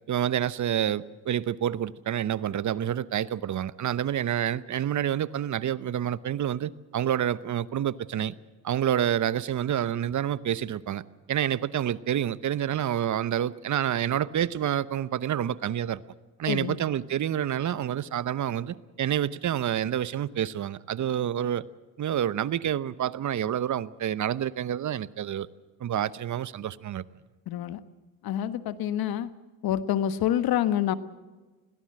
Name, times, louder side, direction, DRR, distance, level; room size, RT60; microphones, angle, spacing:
voice 1, 0.1-8.3 8.6-11.0 11.3-16.0 16.4-21.6 22.0-25.5 25.8-27.0, right 10 dB, 50° right, 0.9 m, -28 dB
voice 2, 16.5-16.8 27.5-27.8 28.2-29.3 29.6-30.9, left 11 dB, 70° left, 1.4 m, -27 dB
21.5 x 17.0 x 7.7 m
supercardioid pair, 70°, 38 cm